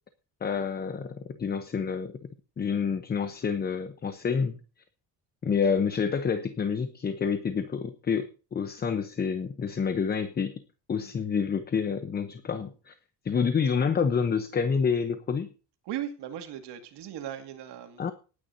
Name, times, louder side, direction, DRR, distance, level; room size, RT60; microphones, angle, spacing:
voice 1, 0.4-2.1 2.6-4.6 5.4-10.5 10.9-12.9 13.2-15.5 18.0-18.1, left 6 dB, 25° left, 0.8 m, -28 dB
voice 2, 15.9-18.0, right 10 dB, 85° right, 2.4 m, -37 dB
18.5 x 9.6 x 2.7 m
cardioid pair, 175°, 40 cm